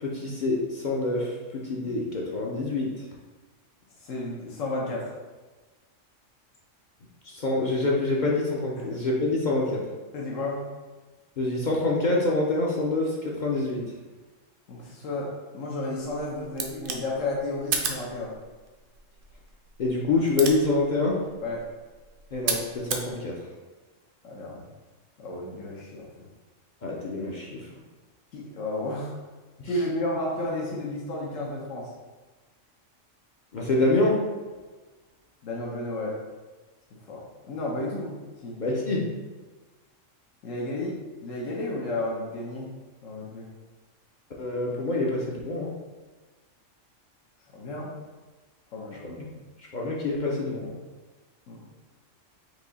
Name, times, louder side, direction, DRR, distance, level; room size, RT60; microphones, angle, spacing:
voice 1, 0.0-3.0 7.2-9.8 11.4-13.8 19.8-21.2 22.3-23.3 26.8-27.7 29.6-29.7 33.5-34.2 38.6-39.0 44.4-45.7 49.0-49.2 49.7-50.7, left 2 dB, 50° left, -3 dB, 0.6 m, -26 dB
voice 2, 4.0-5.1 8.8-8.9 10.1-10.6 14.7-18.3 21.4-21.6 24.2-24.6 25.2-26.3 28.3-29.1 29.7-31.9 35.4-36.1 37.1-38.2 38.4-38.6 40.4-42.7 43.0-43.5 47.5-47.9 48.7-49.0 51.5-51.6, left 2 dB, 80° left, -4 dB, 1.2 m, -32 dB
sound 1, 16.0-23.1, right 5 dB, 60° right, 0.6 m, -35 dB
4.8 x 2.7 x 3.9 m, 1.3 s
omnidirectional pair, 1.3 m